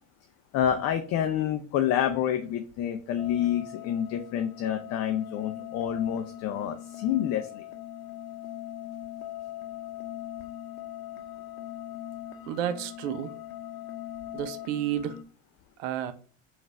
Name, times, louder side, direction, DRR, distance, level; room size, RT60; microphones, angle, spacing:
voice 1, 0.5-7.6, left 10 dB, 40° left, 0.4 m, -28 dB
sound 1, 3.2-15.2, left 12 dB, 80° left, 0.7 m, -41 dB
voice 2, 12.5-13.3 14.3-15.2 15.8-16.1, right 11 dB, 65° right, 0.6 m, -31 dB
3.9 x 2.6 x 3.1 m
hypercardioid pair, 80°, 40 cm